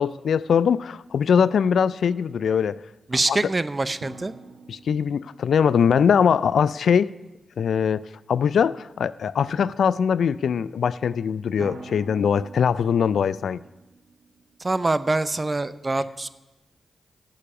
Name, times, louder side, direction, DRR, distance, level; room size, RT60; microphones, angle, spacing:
voice 1, 0.0-2.8 3.3-3.4 4.7-7.1 7.6-8.0 8.3-13.6, left 7 dB, 80° left, 19 dB, 0.3 m, -21 dB
voice 2, 3.1-4.3 14.6-16.3, right 2 dB, 35° right, 15 dB, 0.6 m, -24 dB
sound 1, 4.0-7.4 11.6-14.9, right 3 dB, 90° right, 1.4 m, -46 dB
12.0 x 6.9 x 8.8 m, 1.0 s
cardioid pair, 50°, 0 cm